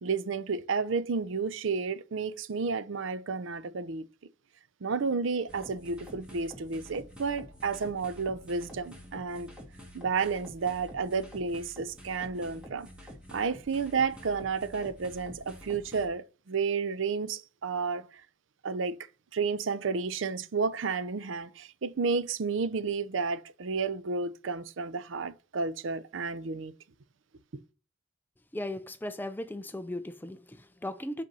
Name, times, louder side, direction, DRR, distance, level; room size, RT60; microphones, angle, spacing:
voice 1, 0.0-4.0 4.8-9.5 9.9-12.9 13.3-18.1 18.6-19.0 19.3-26.7, right 5 dB, 70° right, 0.5 m, -31 dB
sound 1, 5.5-16.1, equal, 5° right, 1.9 m, -48 dB
voice 2, 28.5-31.2, left 1 dB, 10° left, 0.4 m, -37 dB
5.3 x 5.3 x 5.4 m
head